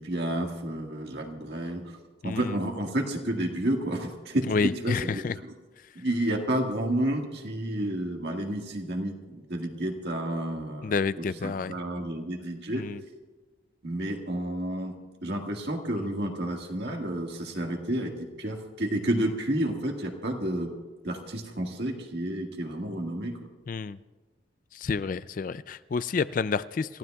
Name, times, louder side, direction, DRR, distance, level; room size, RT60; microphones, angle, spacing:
voice 1, 0.0-2.0 2.2-5.6 6.0-12.8 13.8-14.9 15.2-20.7 21.0-23.5, right 1 dB, 60° right, 2 dB, 1.7 m, -30 dB
voice 2, 2.2-2.6 4.5-5.3 10.8-11.7 12.7-13.0 23.7-24.0 24.7-27.0, left 5 dB, 45° left, 15 dB, 0.3 m, -29 dB
28.5 x 15.5 x 2.3 m, 1.3 s
head